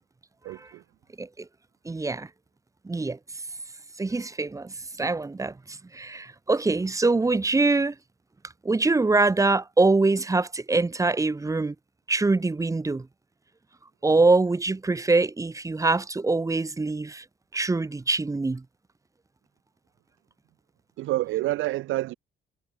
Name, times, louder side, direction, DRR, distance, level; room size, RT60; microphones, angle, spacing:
voice 1, 0.4-0.8 21.0-22.1, right 17 dB, 85° right, 0.7 m, -28 dB
voice 2, 1.8-2.3 2.8-3.2 4.0-7.9 8.6-11.7 12.1-13.1 14.0-17.2 17.5-18.6, right 3 dB, 15° right, 0.8 m, -24 dB
cardioid pair, 90°, 20 cm